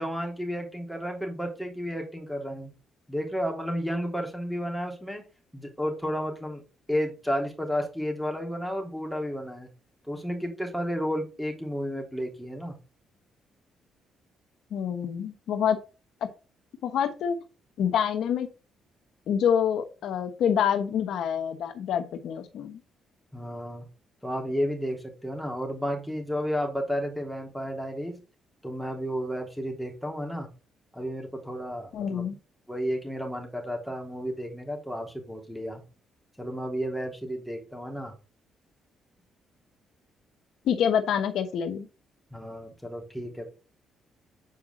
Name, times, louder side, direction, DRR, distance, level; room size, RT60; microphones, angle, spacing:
voice 1, 0.0-2.7 3.1-5.2 5.5-6.6 6.9-9.7 10.1-12.8 23.3-23.8 24.2-28.2 28.6-30.5 30.9-32.2 32.7-35.8 36.4-38.1 42.3-43.5, equal, ahead, 1 dB, 3.3 m, -32 dB
voice 2, 14.7-15.8 16.8-17.3 17.8-18.5 19.3-22.8 31.9-32.3 40.6-41.9, left 8 dB, 75° left, 8 dB, 1.1 m, -26 dB
8.1 x 4.9 x 3.7 m, 0.33 s
cardioid pair, 90°, 0 cm